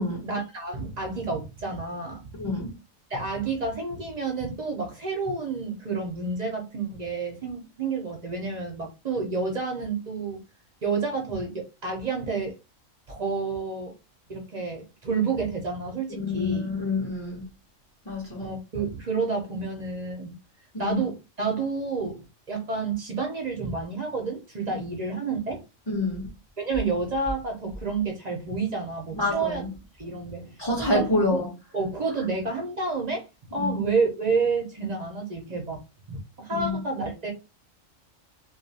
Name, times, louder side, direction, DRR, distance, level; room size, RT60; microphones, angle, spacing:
voice 1, 0.2-2.2 3.1-10.4 10.8-12.5 13.1-13.9 14.3-16.6 18.4-20.4 20.8-25.6 26.6-29.7 30.0-31.0 31.3-31.4 31.7-33.2 33.5-35.8 36.1-37.3, right 4 dB, 50° right, 0.5 m, -29 dB
voice 2, 2.4-2.7 16.1-17.5 18.1-18.5 20.7-21.0 24.7-24.8 25.9-26.3 29.1-29.7 30.6-31.5 33.6-33.8 36.5-36.8, left 2 dB, 30° left, 0.5 m, -27 dB
2.4 x 2.3 x 2.7 m
omnidirectional pair, 1.4 m